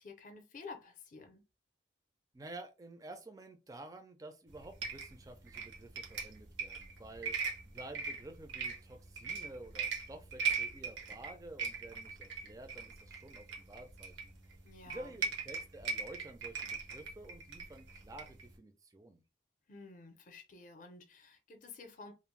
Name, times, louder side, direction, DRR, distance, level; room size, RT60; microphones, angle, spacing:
voice 1, 0.0-1.4 14.6-15.3 19.7-22.1, left 3 dB, 45° left, 0.5 m, -51 dB
voice 2, 2.3-7.4 7.6-14.3 14.9-19.2, right 2 dB, 20° right, 0.4 m, -51 dB
sound 1, 4.5-18.5, right 5 dB, 80° right, 0.7 m, -40 dB
2.5 x 2.0 x 3.1 m
head